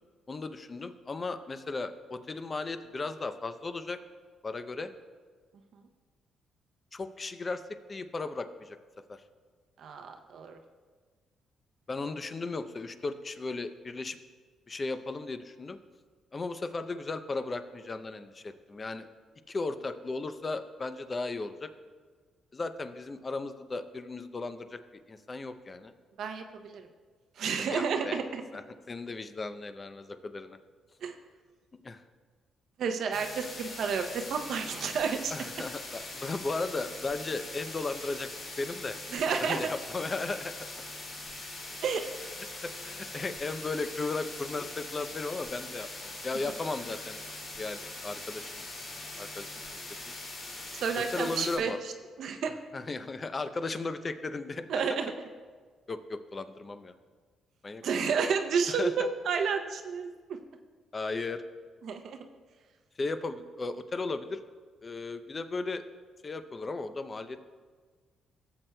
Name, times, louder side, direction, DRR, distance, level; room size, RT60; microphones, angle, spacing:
voice 1, 0.3-4.0 4.4-4.9 6.9-8.8 9.1-9.2 11.9-14.2 14.7-15.8 16.3-19.1 19.5-21.7 22.5-24.8 25.1-25.9 27.6-28.2 28.5-28.6 28.9-30.6 31.8-32.0 35.3-38.3 38.6-39.0 39.4-40.7 42.6-45.9 46.2-47.2 47.6-48.5 49.2-49.5 50.1-50.2 51.1-51.8 52.7-54.6 55.9-56.9 57.6-57.8 58.7-58.9 60.9-61.4 63.0-64.4 64.8-65.8 66.2-67.5, left 3 dB, 30° left, 10 dB, 0.5 m, -36 dB
voice 2, 9.8-10.6 26.2-26.9 27.4-28.4 31.0-31.2 32.8-35.3 35.6-35.7 39.1-39.7 41.8-42.0 50.7-51.9 52.2-52.5 54.7-55.1 57.8-60.4 61.8-62.2, right 6 dB, 70° right, 6 dB, 0.6 m, -31 dB
sound 1, 33.1-51.6, left 2 dB, 60° left, 2.5 m, -42 dB
15.0 x 7.7 x 2.2 m, 1.5 s
cardioid pair, 90°, 0 cm